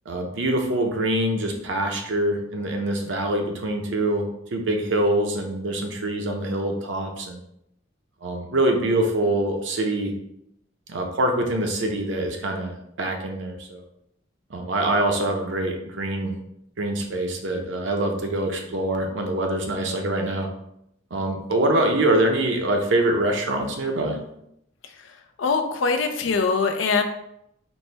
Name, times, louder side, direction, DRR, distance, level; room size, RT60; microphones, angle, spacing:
voice 1, 0.1-7.5 8.2-10.1 10.9-13.8 14.5-16.3 16.8-20.5 21.1-24.2, right 1 dB, 65° right, 3 dB, 0.6 m, -24 dB
voice 2, 25.4-27.0, left 4 dB, 75° left, 6 dB, 0.5 m, -22 dB
4.2 x 2.1 x 3.3 m, 0.77 s
head